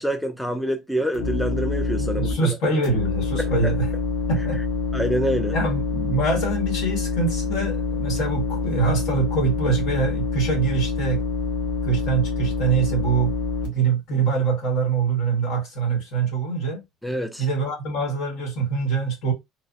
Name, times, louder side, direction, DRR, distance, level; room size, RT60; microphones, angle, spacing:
voice 1, 0.0-2.6 3.4-3.5 4.9-5.5 17.0-17.5, equal, ahead, 0.4 m, -26 dB
sound 1, 1.1-2.3 2.8-13.7, left 4 dB, 85° left, 1.2 m, -26 dB
voice 2, 2.0-3.9 4.3-4.6 5.5-11.2 11.8-13.3 13.6-16.8 17.4-19.3, right 4 dB, 65° left, 1.3 m, -24 dB
3.2 x 2.1 x 2.5 m
cardioid pair, 140°, 0 cm